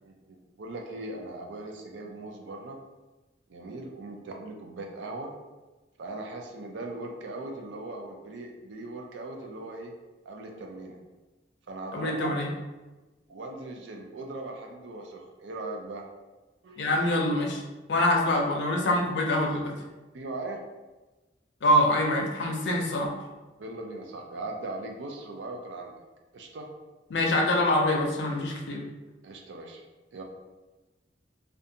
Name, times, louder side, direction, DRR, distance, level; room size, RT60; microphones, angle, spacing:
voice 1, 0.0-2.8 3.5-5.3 6.0-9.9 10.3-11.0 11.7-12.4 13.3-16.0 16.6-16.9 20.1-20.6 23.6-26.0 26.3-26.7 29.2-29.8 30.1-30.2, right 2 dB, 80° right, 1 dB, 0.4 m, -39 dB
voice 2, 11.9-12.5 16.8-17.6 17.9-19.8 21.6-23.1 27.1-28.8, left 1 dB, 65° left, 0 dB, 0.4 m, -25 dB
2.5 x 2.2 x 2.7 m, 1.2 s
head